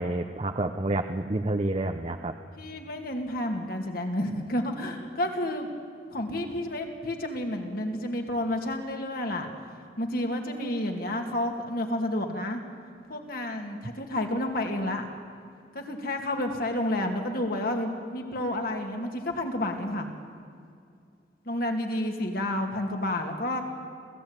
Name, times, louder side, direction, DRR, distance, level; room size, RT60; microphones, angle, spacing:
voice 1, 0.0-2.3, right 2 dB, 35° right, 6 dB, 0.8 m, -29 dB
voice 2, 2.6-5.7 6.1-9.5 10.0-12.6 13.1-15.1 15.7-20.1 21.5-23.6, left 1 dB, 55° left, 3 dB, 2.6 m, -30 dB
26.0 x 15.5 x 9.1 m, 2.3 s
head